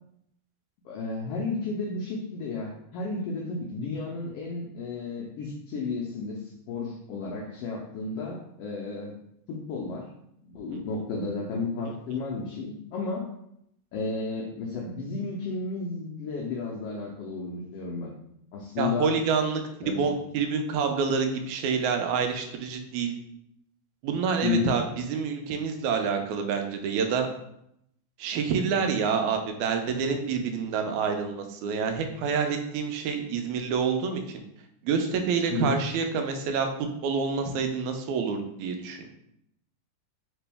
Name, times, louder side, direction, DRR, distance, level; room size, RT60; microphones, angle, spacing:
voice 1, 0.8-9.1 9.5-10.1 10.4-13.3 13.9-18.1 18.5-19.2 19.8-20.1 24.4-24.7 35.5-35.8, left 4 dB, 85° left, -2 dB, 1.3 m, -32 dB
voice 2, 18.8-23.2 24.0-27.3 28.2-34.4 34.8-36.7 37.0-39.1, right 5 dB, 90° right, 5 dB, 2.0 m, -27 dB
4.4 x 3.0 x 3.4 m, 0.77 s
omnidirectional pair, 3.3 m